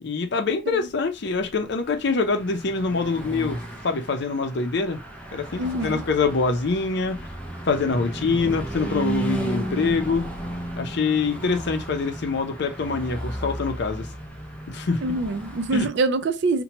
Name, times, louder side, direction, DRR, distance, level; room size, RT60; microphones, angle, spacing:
voice 1, 0.0-5.0 5.3-7.3 7.7-10.3 10.8-14.1 14.7-15.1 15.7-15.9, left 4 dB, 60° left, 0.5 m, -25 dB
Car passing by / Truck, 1.5-15.9, right 1 dB, 5° left, 0.5 m, -34 dB
voice 2, 5.6-6.0 15.0-16.6, right 3 dB, 60° right, 0.4 m, -25 dB
2.8 x 2.1 x 2.8 m
head